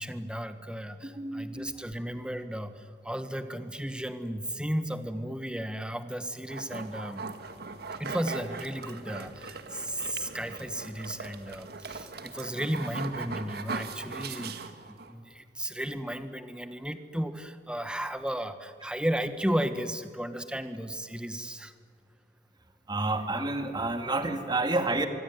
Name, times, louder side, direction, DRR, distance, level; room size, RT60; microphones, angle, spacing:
voice 1, 0.0-7.2 8.0-14.6 15.1-21.7, equal, 5° right, 10 dB, 1.4 m, -34 dB
voice 2, 1.0-1.7 9.9-10.0 22.9-25.1, right 2 dB, 25° right, 7 dB, 2.2 m, -29 dB
sound 1, 6.5-15.1, right 4 dB, 60° right, 1.8 m, -39 dB
24.0 x 23.5 x 9.6 m, 2.1 s
head